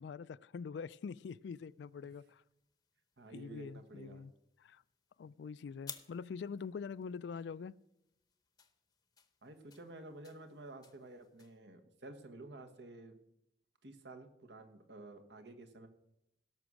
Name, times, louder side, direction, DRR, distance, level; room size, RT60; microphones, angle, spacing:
voice 1, 0.0-2.4 3.3-4.3 4.6-4.8 5.2-7.7, left 5 dB, 70° left, 0.3 m, -44 dB
sound 1, 0.8-11.6, left 7 dB, 20° left, 0.7 m, -58 dB
voice 2, 3.2-4.3 9.4-13.2 13.8-15.9, right 2 dB, 70° right, 1.3 m, -52 dB
16.5 x 6.2 x 6.3 m
head